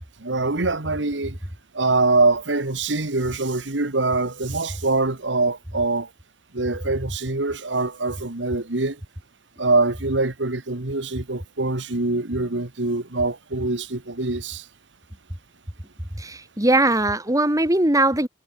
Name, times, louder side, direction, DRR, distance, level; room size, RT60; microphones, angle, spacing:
voice 1, 0.2-1.4 1.7-6.1 6.5-9.0 9.6-14.6, right 3 dB, 80° right, 1.9 m, -24 dB
voice 2, 16.2-18.3, right 2 dB, 20° right, 3.1 m, -20 dB
head